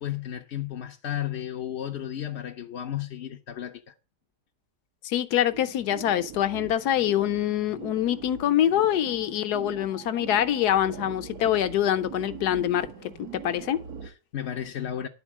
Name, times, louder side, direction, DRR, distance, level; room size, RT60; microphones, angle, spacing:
voice 1, 0.0-3.9 14.0-15.1, left 11 dB, 55° left, 0.8 m, -33 dB
voice 2, 5.0-12.9 13.3-13.8, left 11 dB, 75° left, 1.3 m, -25 dB
sound 1, 5.5-14.1, right 7 dB, 65° right, 1.7 m, -42 dB
11.0 x 4.3 x 7.2 m
omnidirectional pair, 1.8 m